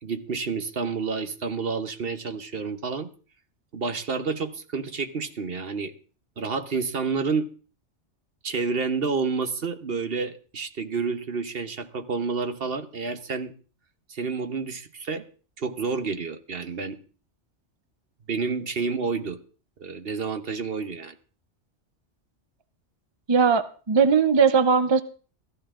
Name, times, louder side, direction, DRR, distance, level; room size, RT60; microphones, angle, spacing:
voice 1, 0.0-3.1 3.7-5.9 6.4-7.5 8.4-13.5 14.1-15.3 15.6-17.0 18.3-19.4 19.8-21.2, right 5 dB, 55° right, 9 dB, 1.2 m, -29 dB
voice 2, 23.3-25.0, right 5 dB, 30° right, 12 dB, 0.5 m, -19 dB
14.5 x 14.0 x 3.7 m, 0.38 s
omnidirectional pair, 1.2 m